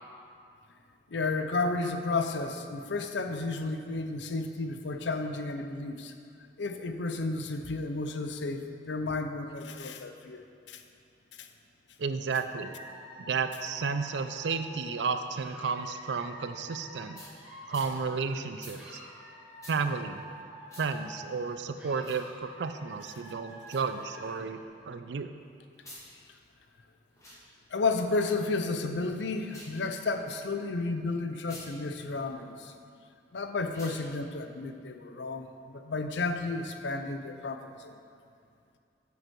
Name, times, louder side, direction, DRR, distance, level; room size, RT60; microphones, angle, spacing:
voice 1, 1.1-6.1 6.6-10.4 10.7-10.8 11.4-11.5 27.7-32.7 33.3-38.0, left 3 dB, 85° left, 7 dB, 0.6 m, -32 dB
voice 2, 12.0-12.7 13.2-17.2 17.7-19.0 19.7-20.2 20.8-25.3, right 5 dB, 80° right, 9 dB, 0.5 m, -32 dB
Dog / Alarm, 12.6-18.5 18.7-21.5 21.7-24.5, equal, 5° right, 2.0 m, -49 dB
sound 1, 17.1-17.3 17.7-17.9 18.6-18.8 19.6-19.8 20.7-20.9 21.9-22.2 23.6-23.8 25.7-26.0 27.1-27.4 29.4-29.8 31.4-31.7 33.7-34.0, left 1 dB, 15° left, 1.9 m, -48 dB
7.7 x 7.2 x 4.6 m, 2.4 s
head